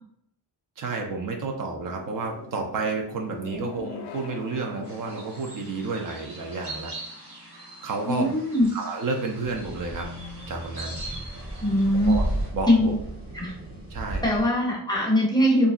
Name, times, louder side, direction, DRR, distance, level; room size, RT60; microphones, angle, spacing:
voice 1, 0.8-6.9 7.5-8.3 8.7-10.1 10.5-11.0 12.0-12.3 12.5-12.9 13.9-14.3, right 3 dB, 55° right, 2 dB, 0.5 m, -31 dB
sound 1, 1.8-8.0, left 4 dB, 70° left, 0.5 m, -44 dB
sound 2, 4.8-12.5, right 2 dB, 75° right, 1.4 m, -43 dB
voice 2, 8.0-8.7 11.6-12.2 12.7-13.0 13.3-13.5 14.2-15.7, equal, 10° left, -3 dB, 0.5 m, -21 dB
sound 3, 9.4-14.5, right 1 dB, 35° right, 0.9 m, -33 dB
2.8 x 2.5 x 2.4 m, 0.69 s
wide cardioid pair, 150°, 41 cm